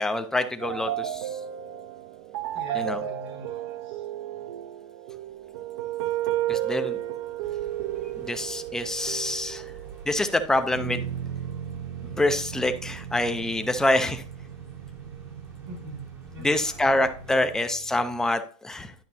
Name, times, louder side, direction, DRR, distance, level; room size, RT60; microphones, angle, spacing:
voice 1, 0.0-1.4 2.7-3.0 6.5-7.0 8.2-9.7 10.1-11.1 12.0-14.2 16.4-18.9, left 1 dB, 5° left, 8 dB, 0.5 m, -26 dB
sound 1, 0.6-18.3, right 12 dB, 45° right, 0.7 m, -34 dB
voice 2, 2.5-4.4 15.7-16.9 17.2-17.5, equal, 70° right, 2 dB, 2.3 m, -44 dB
sound 2, 7.4-17.7, right 5 dB, 15° right, 0.9 m, -47 dB
10.5 x 5.8 x 2.7 m, 0.43 s
hypercardioid pair, 150°, 15 cm